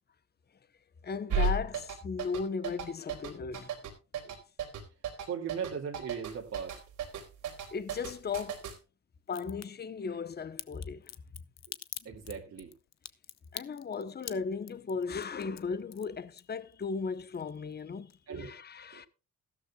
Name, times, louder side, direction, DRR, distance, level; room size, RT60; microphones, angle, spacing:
voice 1, 1.0-3.7 7.7-8.7 9.3-11.1 12.0-12.2 13.5-19.1, left 5 dB, 35° left, 1.0 m, -36 dB
sound 1, 1.3-8.8, right 4 dB, 80° right, 3.8 m, -33 dB
voice 2, 5.2-6.8 11.7-11.8 12.0-12.7 18.3-18.5 18.9-19.0, right 7 dB, 55° right, 2.4 m, -38 dB
Crack, 9.3-9.7 10.6-16.8 17.1-17.8 18.1-18.2, left 11 dB, 60° left, 0.9 m, -44 dB
15.0 x 13.0 x 2.3 m
cardioid pair, 90°, 30 cm